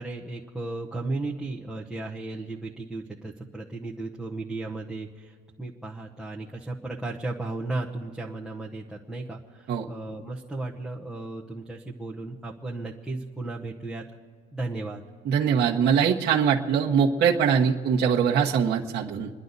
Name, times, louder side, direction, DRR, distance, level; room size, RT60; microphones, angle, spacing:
voice 1, 0.0-14.0 14.5-15.0, right 2 dB, ahead, -4 dB, 0.8 m, -35 dB
voice 2, 15.2-19.3, right 7 dB, 35° right, -3 dB, 1.2 m, -22 dB
29.0 x 11.0 x 4.0 m, 2.1 s
cardioid pair, 175°, 29 cm